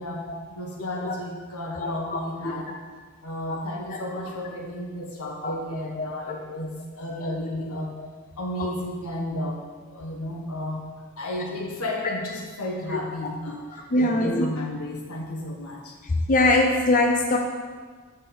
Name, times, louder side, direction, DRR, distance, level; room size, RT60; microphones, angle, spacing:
voice 1, 0.0-2.7 3.2-7.9 8.4-9.6 9.9-10.9 11.2-15.9, left 1 dB, 80° left, 0 dB, 1.5 m, -33 dB
voice 2, 13.7-14.5 16.3-17.4, left 2 dB, 35° left, 1 dB, 0.6 m, -21 dB
8.4 x 5.4 x 5.5 m, 1.5 s
head